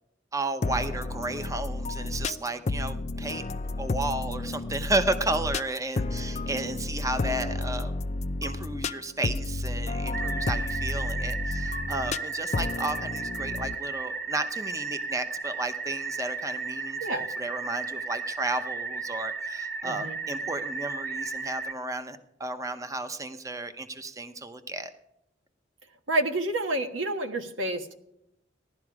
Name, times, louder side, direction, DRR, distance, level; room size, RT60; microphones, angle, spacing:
voice 1, 0.3-3.5 3.8-7.9 8.4-24.9, right 2 dB, 15° right, 9 dB, 0.8 m, -33 dB
sound 1, 0.6-13.8, left 2 dB, 35° left, 0.4 m, -31 dB
sound 2, 10.1-21.7, right 4 dB, 55° right, 2.7 m, -34 dB
voice 2, 19.8-20.2 26.1-27.9, right 1 dB, 90° right, 7 dB, 1.4 m, -29 dB
16.5 x 11.5 x 4.8 m, 0.82 s
head